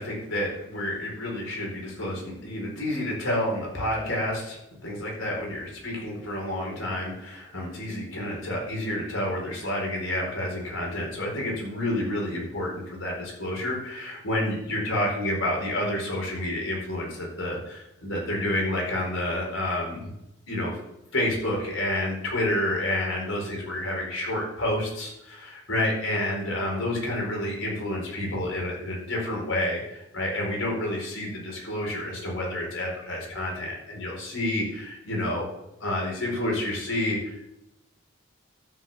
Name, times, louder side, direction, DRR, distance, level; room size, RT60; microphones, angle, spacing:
voice 1, 0.0-20.1 20.5-20.8 21.1-35.5 35.8-37.3, left 1 dB, 70° left, -2 dB, 4.5 m, -29 dB
13.0 x 5.6 x 7.3 m, 0.88 s
head